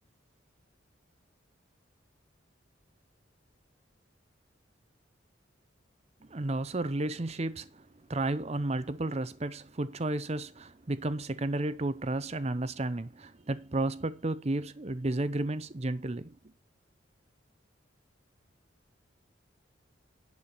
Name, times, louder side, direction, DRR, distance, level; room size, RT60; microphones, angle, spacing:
voice 1, 6.3-7.8 8.1-16.4, right 2 dB, 35° right, 0.7 m, -32 dB
11.0 x 4.9 x 6.9 m
head